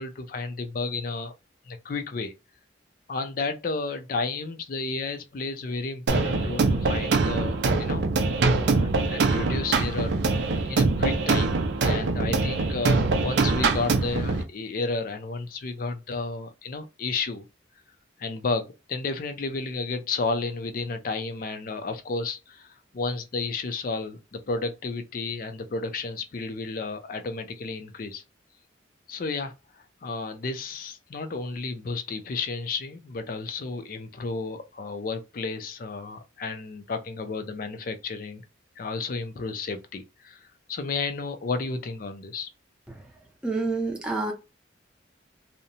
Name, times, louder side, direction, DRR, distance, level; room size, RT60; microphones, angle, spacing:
voice 1, 0.0-1.3 1.7-2.3 3.1-8.0 8.5-10.2 10.6-17.4 18.2-28.2 29.1-29.5 30.0-38.4 38.8-42.5, left 3 dB, 45° left, 0.4 m, -32 dB
sound 1, 6.1-14.4, right 3 dB, 65° right, 0.4 m, -24 dB
voice 2, 43.4-44.3, right 3 dB, 5° right, 0.6 m, -28 dB
2.7 x 2.1 x 2.7 m
head